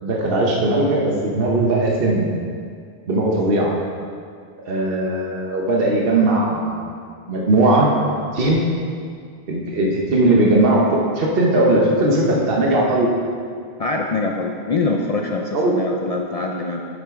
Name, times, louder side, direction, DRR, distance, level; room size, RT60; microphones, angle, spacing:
voice 1, 0.0-2.3 3.1-3.7 4.7-6.9 7.3-7.9 8.3-8.6 9.5-13.1 15.5-15.9, right 2 dB, 65° right, -3 dB, 1.2 m, -18 dB
voice 2, 13.8-16.9, left 3 dB, 45° left, 1 dB, 0.5 m, -24 dB
8.9 x 7.9 x 3.7 m, 2.2 s
omnidirectional pair, 1.1 m